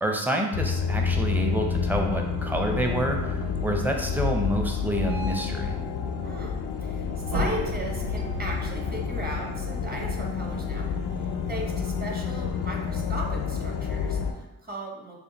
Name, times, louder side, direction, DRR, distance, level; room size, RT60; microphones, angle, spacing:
voice 1, 0.0-5.8, right 1 dB, 5° right, 2 dB, 0.6 m, -28 dB
sound 1, 0.5-14.3, left 6 dB, 85° left, 0.5 m, -29 dB
sound 2, 1.9-14.4, left 2 dB, 85° right, 1.3 m, -48 dB
voice 2, 6.2-15.2, right 1 dB, 25° right, -1 dB, 0.9 m, -37 dB
sound 3, 7.3-12.1, equal, 65° right, 1.3 m, -36 dB
3.4 x 2.2 x 4.0 m, 0.93 s
cardioid pair, 60°, 37 cm